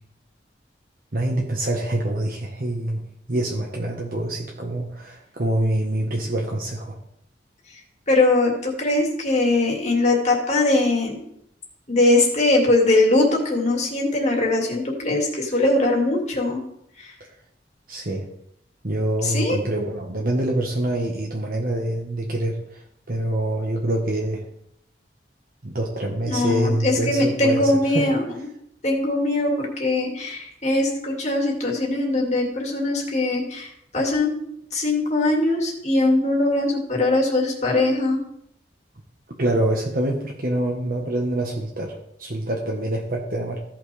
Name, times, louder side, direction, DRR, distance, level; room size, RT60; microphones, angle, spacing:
voice 1, 1.1-3.0 3.3-7.0 17.9-18.3 18.8-22.8 23.1-24.4 25.6-28.1 39.4-43.6, right 1 dB, 50° right, -1 dB, 1.3 m, -25 dB
voice 2, 8.1-11.2 11.9-16.6 17.0-17.1 19.2-19.6 26.3-28.5 28.8-34.4 34.7-38.2, left 2 dB, 40° left, 0 dB, 2.3 m, -21 dB
15.5 x 5.9 x 3.4 m, 0.72 s
head